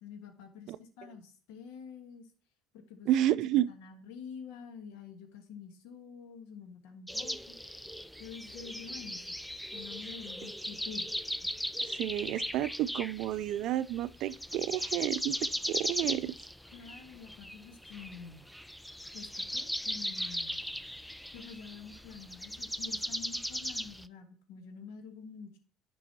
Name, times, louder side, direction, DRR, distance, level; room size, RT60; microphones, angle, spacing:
voice 1, 0.0-2.3 2.7-3.4 3.7-7.6 8.2-9.4 9.7-11.1 13.3-13.6 16.7-18.4 19.1-20.6 21.3-25.6, left 6 dB, 80° left, 1.5 m, -48 dB
voice 2, 3.1-3.7 11.8-16.3, right 13 dB, 65° right, 0.4 m, -31 dB
sound 1, 7.1-13.6 13.9-24.1, equal, 5° left, 0.4 m, -38 dB
10.5 x 5.3 x 2.9 m
supercardioid pair, 75°, 0 cm